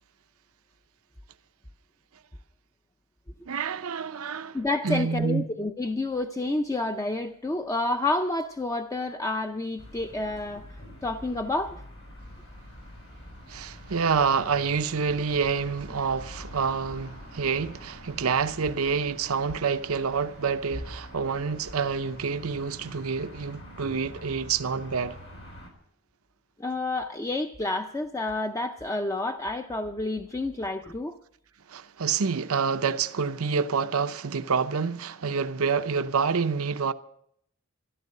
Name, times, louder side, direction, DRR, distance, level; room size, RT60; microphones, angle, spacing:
voice 1, 3.5-4.6 4.8-5.5 13.5-25.2 31.7-36.9, right 5 dB, 80° right, 0.7 m, -27 dB
voice 2, 4.5-11.8 26.6-31.2, left 2 dB, 15° left, 0.5 m, -29 dB
sound 1, 9.8-25.7, equal, 65° left, 3.9 m, -45 dB
13.5 x 12.5 x 6.6 m
head